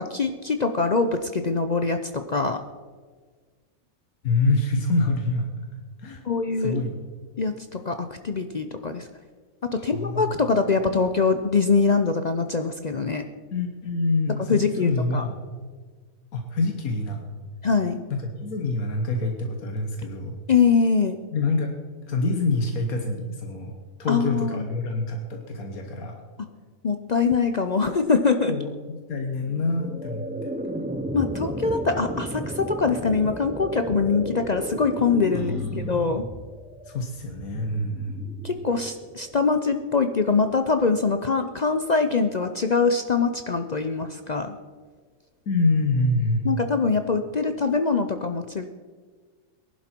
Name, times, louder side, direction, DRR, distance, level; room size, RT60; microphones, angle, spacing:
voice 1, 0.0-2.6 6.2-6.8 7.4-9.1 9.7-13.3 14.5-15.2 17.6-18.0 20.5-21.2 24.1-24.7 26.8-28.5 31.1-36.2 38.4-44.5 46.4-48.7, left 4 dB, 50° left, 7 dB, 0.5 m, -23 dB
voice 2, 4.2-5.5 6.0-6.2 6.6-6.9 9.7-10.3 13.5-15.4 16.3-17.2 18.1-20.4 21.3-21.7 22.1-23.7 24.0-26.2 28.5-30.5 35.3-35.9 36.9-38.2 45.5-46.6, left 2 dB, 90° left, 3 dB, 1.7 m, -26 dB
sound 1, 29.5-40.6, right 1 dB, 10° right, 0.4 m, -34 dB
19.0 x 11.5 x 4.5 m, 1.5 s
omnidirectional pair, 1.5 m